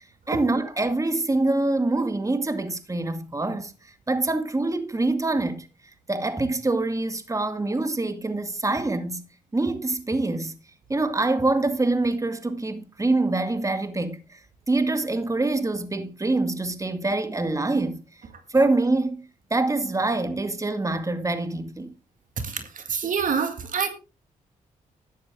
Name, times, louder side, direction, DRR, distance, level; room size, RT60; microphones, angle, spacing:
voice 1, 0.3-5.7 6.1-9.2 9.5-10.5 10.9-14.4 14.7-18.0 18.5-19.2 19.5-21.9, right 2 dB, 20° right, 2.1 m, -25 dB
voice 2, 22.4-23.9, right 6 dB, 60° right, 2.1 m, -27 dB
13.0 x 9.4 x 3.8 m
cardioid pair, 60°, 15 cm